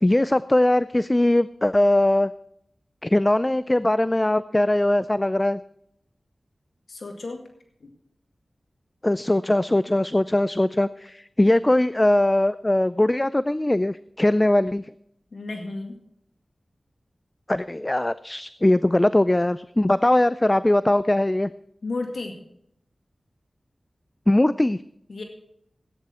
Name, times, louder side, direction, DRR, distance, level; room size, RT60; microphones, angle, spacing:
voice 1, 0.0-2.3 3.0-5.6 9.0-14.9 17.5-21.5 24.3-24.8, left 1 dB, 25° left, 15 dB, 0.4 m, -20 dB
voice 2, 6.9-7.4 7.8-7.9 15.3-16.0 21.8-22.4 25.1-25.2, left 3 dB, 80° left, 3 dB, 1.9 m, -32 dB
16.0 x 9.7 x 4.4 m, 0.73 s
wide cardioid pair, 55°, 0 cm